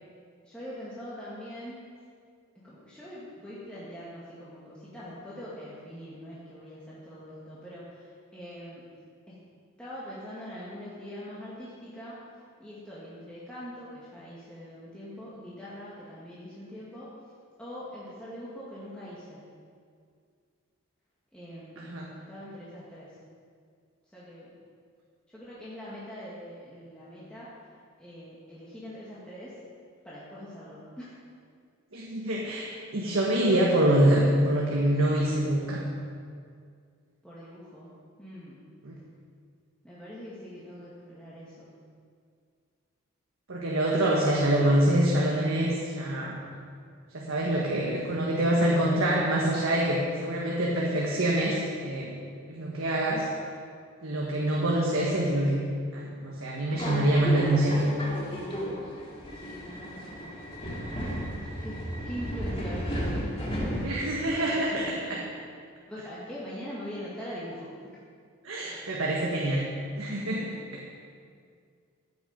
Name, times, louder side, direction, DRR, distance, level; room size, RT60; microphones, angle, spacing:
voice 1, 0.4-1.8 2.6-8.9 9.3-9.4 9.8-12.2 12.6-17.1 17.6-19.4 21.3-21.9 22.3-23.2 24.1-24.5 25.3-27.5 28.0-29.6 30.0-31.1 37.2-37.9 38.2-38.6 39.8-41.7 59.3-60.3 61.4-63.9 64.4-64.8 65.9-68.0, equal, 5° left, -9 dB, 1.9 m, -43 dB
voice 2, 21.8-22.1 31.9-35.8 38.8-38.9 43.5-46.4 47.1-52.2 52.5-53.3 54.0-55.7 55.9-57.8 63.8-65.2 68.4-69.6 70.0-70.8, right 1 dB, 75° right, -3 dB, 1.5 m, -25 dB
Subway metro underground, 56.7-64.3, equal, 25° left, 2.1 m, -34 dB
14.0 x 8.7 x 5.3 m, 2.2 s
head